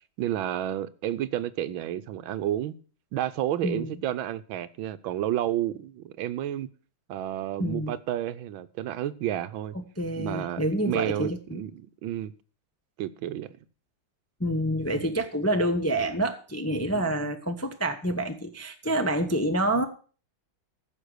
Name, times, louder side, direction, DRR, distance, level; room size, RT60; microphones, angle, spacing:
voice 1, 0.2-2.8 3.1-6.7 7.1-9.7 10.2-12.3 13.0-13.6 15.0-15.1 16.9-17.1, right 12 dB, 80° right, 1.5 m, -31 dB
voice 2, 7.6-7.9 10.0-11.6 14.4-19.9, right 1 dB, 15° left, 0.6 m, -27 dB
15.0 x 6.6 x 6.4 m
omnidirectional pair, 2.2 m